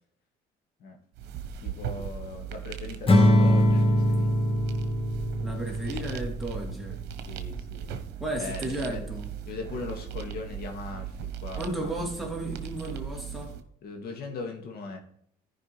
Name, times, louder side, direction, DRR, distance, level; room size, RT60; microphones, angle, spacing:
sound 1, 1.1-13.6, right 8 dB, 80° right, 1.1 m, -38 dB
voice 1, 1.6-4.3 7.3-7.9 8.4-9.1 9.5-11.9 13.8-15.0, left 4 dB, 65° left, 2.1 m, -39 dB
Acoustic guitar / Strum, 3.1-6.4, left 1 dB, 35° left, 1.5 m, -22 dB
voice 2, 5.4-7.0 8.2-9.3 11.6-13.5, right 1 dB, ahead, 2.5 m, -34 dB
14.0 x 5.2 x 3.3 m
cardioid pair, 110°, 17 cm